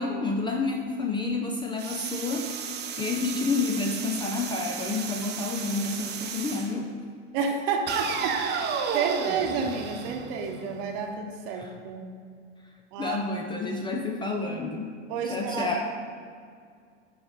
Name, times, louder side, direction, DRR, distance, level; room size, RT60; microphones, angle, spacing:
voice 1, 0.0-2.5 3.0-6.9 11.5-11.7 13.0-14.9 15.3-15.9, left 3 dB, 15° left, 2 dB, 0.5 m, -29 dB
sound 1, 1.8-6.7 7.9-10.8, right 6 dB, 30° right, 0.8 m, -33 dB
voice 2, 7.3-12.1 12.9-13.3 15.1-15.9, right 5 dB, 45° right, 3 dB, 1.1 m, -30 dB
10.5 x 4.6 x 4.1 m, 2.2 s
figure-of-eight pair, 85°, 36 cm